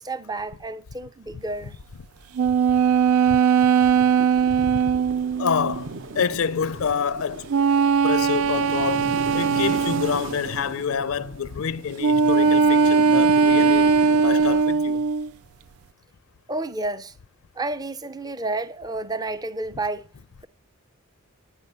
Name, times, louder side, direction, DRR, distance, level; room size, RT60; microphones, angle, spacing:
voice 1, 0.0-1.8 16.5-17.1 17.6-20.1, right 2 dB, 20° right, 0.5 m, -30 dB
sound 1, 2.4-5.9 7.5-10.4 12.0-15.3, right 5 dB, 90° right, 0.4 m, -19 dB
sound 2, 3.6-14.6, right 3 dB, 60° right, 0.8 m, -37 dB
voice 2, 4.5-5.0 5.4-7.5 8.0-15.1, left 6 dB, 70° left, 0.5 m, -28 dB
8.5 x 7.7 x 6.7 m
head